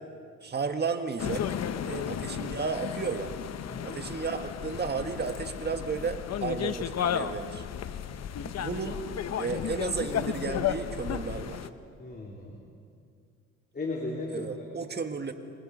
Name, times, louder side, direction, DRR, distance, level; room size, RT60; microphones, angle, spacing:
voice 1, 0.4-1.5 1.8-3.3 3.8-7.6 8.4-9.0 9.4-11.6 14.3-15.3, right 4 dB, 35° right, 6 dB, 1.8 m, -33 dB
sound 1, 1.2-11.7, left 9 dB, 60° left, 1.0 m, -33 dB
voice 2, 3.7-4.0 12.0-12.6 13.7-14.6, left 2 dB, 30° left, -2 dB, 3.8 m, -36 dB
27.5 x 25.0 x 5.5 m, 2.3 s
cardioid pair, 90°, 30 cm